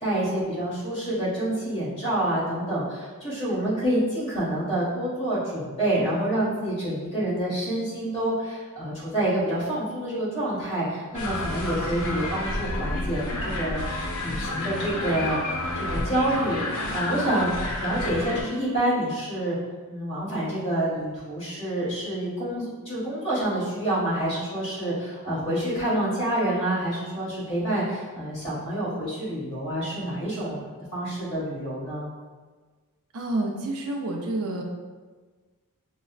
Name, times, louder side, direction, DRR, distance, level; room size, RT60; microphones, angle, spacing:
voice 1, 0.0-13.8 14.2-19.6 19.9-30.7 30.9-32.1, right 1 dB, 25° left, -8 dB, 1.5 m, -27 dB
sound 1, 11.1-18.4, left 1 dB, 75° left, 0.6 m, -30 dB
voice 2, 33.1-34.6, right 2 dB, 75° right, 0 dB, 0.5 m, -28 dB
5.3 x 2.1 x 2.4 m, 1.4 s
head